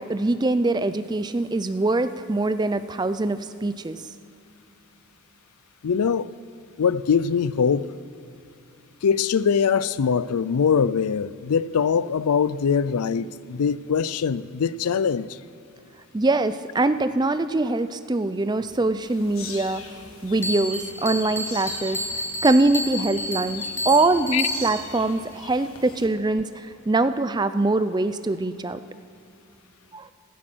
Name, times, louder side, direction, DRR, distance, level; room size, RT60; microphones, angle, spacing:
voice 1, 0.0-4.0 16.1-19.8 20.2-22.0 22.4-28.8 29.9-30.1, right 2 dB, 20° right, 0.4 m, -23 dB
voice 2, 5.8-6.3 6.8-7.9 9.0-15.4 24.3-24.4, left 6 dB, 85° left, 0.4 m, -22 dB
sound 1, 19.0-26.1, left 5 dB, 70° left, 1.6 m, -43 dB
Bell, 20.4-24.9, equal, 10° left, 1.3 m, -30 dB
16.5 x 12.5 x 6.2 m
head